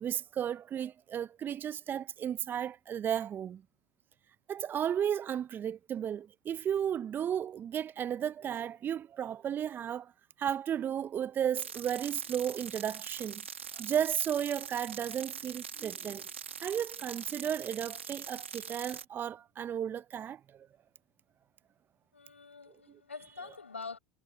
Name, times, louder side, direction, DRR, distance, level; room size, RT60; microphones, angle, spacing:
voice 1, 0.0-3.6 4.5-10.1 10.4-13.4 13.7-16.2 16.6-20.7, right 9 dB, 30° right, 0.9 m, -34 dB
sound 1, 11.5-19.0, right 6 dB, 85° right, 1.4 m, -43 dB
voice 2, 22.1-24.0, left 4 dB, 90° left, 5.5 m, -45 dB
hypercardioid pair, 85°, 6 cm